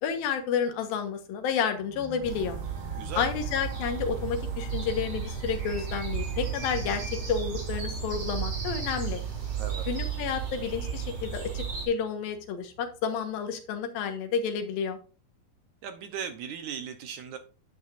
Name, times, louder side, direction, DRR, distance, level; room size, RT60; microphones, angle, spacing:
voice 1, 0.0-2.6 3.2-9.2 9.9-15.0, left 7 dB, 85° left, 3.1 m, -30 dB
sound 1, 1.8-13.1, right 2 dB, 90° right, 3.4 m, -44 dB
sound 2, 2.2-11.9, right 7 dB, 35° right, 3.3 m, -34 dB
voice 2, 15.8-17.4, right 7 dB, 70° right, 1.9 m, -37 dB
10.5 x 9.0 x 2.6 m
omnidirectional pair, 4.1 m